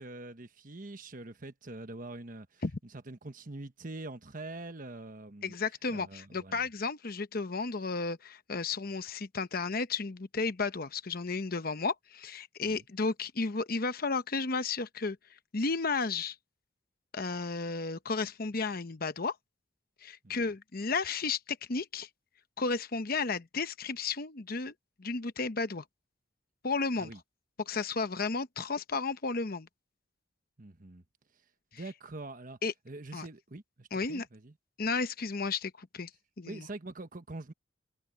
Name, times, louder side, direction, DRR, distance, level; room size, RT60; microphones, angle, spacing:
voice 1, 0.0-2.6 3.1-5.5 5.9-6.6 12.6-12.8 20.2-20.3 27.0-27.2 30.6-31.0 31.7-32.6 32.8-34.5 36.5-37.5, right 2 dB, 45° right, 1.2 m, -44 dB
voice 2, 5.4-15.2 15.5-16.4 17.1-19.4 20.0-22.1 22.6-24.7 25.0-25.8 26.6-27.1 27.6-29.7 32.6-32.7 33.1-33.3 33.9-34.3 34.8-36.1 36.4-36.7, left 4 dB, 50° left, 0.9 m, -33 dB
head